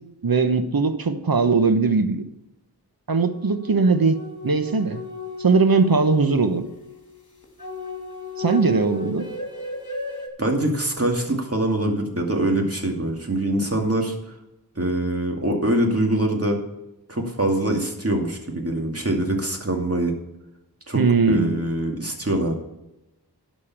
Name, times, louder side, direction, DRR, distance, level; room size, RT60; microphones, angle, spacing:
voice 1, 0.2-2.2 3.1-4.2 4.4-5.0 5.4-6.7 8.4-9.3 20.9-21.5, right 4 dB, 60° right, 9 dB, 1.1 m, -20 dB
sound 1, 3.3-10.3, left 2 dB, 45° left, 2.6 m, -35 dB
voice 2, 10.4-14.3 14.8-16.6 17.1-20.1 20.9-22.5, right 1 dB, 35° right, 1 dB, 2.4 m, -24 dB
12.0 x 5.4 x 7.2 m, 0.92 s
wide cardioid pair, 50°, 40 cm